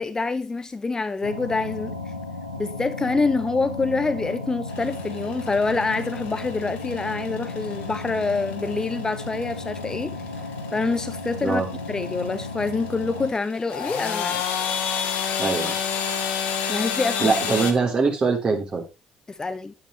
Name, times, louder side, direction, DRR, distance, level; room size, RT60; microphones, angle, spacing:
voice 1, 0.0-2.0 2.5-10.1 10.7-11.6 11.9-14.4 16.7-17.4 19.3-19.7, left 3 dB, 25° left, 0.8 m, -26 dB
sound 1, 1.2-13.3, left 3 dB, 85° left, 1.5 m, -34 dB
sound 2, 4.7-17.7, left 7 dB, 65° left, 1.9 m, -31 dB
voice 2, 15.4-15.8 17.2-18.8, right 4 dB, 35° right, 3.6 m, -22 dB
10.5 x 9.8 x 3.1 m
figure-of-eight pair, 45°, 3 cm